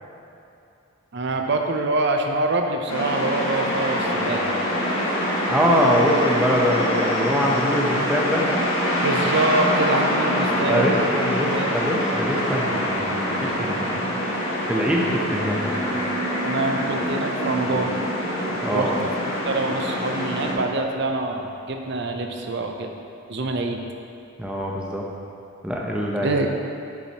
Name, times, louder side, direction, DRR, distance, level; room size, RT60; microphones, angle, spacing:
voice 1, 1.1-4.5 9.0-11.0 11.5-11.7 16.4-18.0 18.7-19.1 19.4-22.9 23.3-23.8 26.2-26.5, right 2 dB, 50° right, 3 dB, 0.6 m, -25 dB
sound 1, 2.9-20.5, equal, 65° left, 1.6 m, -25 dB
voice 2, 5.5-8.7 10.7-14.2 14.7-16.0 18.6-18.9 24.4-25.0 25.6-26.4, equal, 5° right, -3 dB, 0.7 m, -24 dB
7.7 x 7.1 x 2.9 m, 2.7 s
head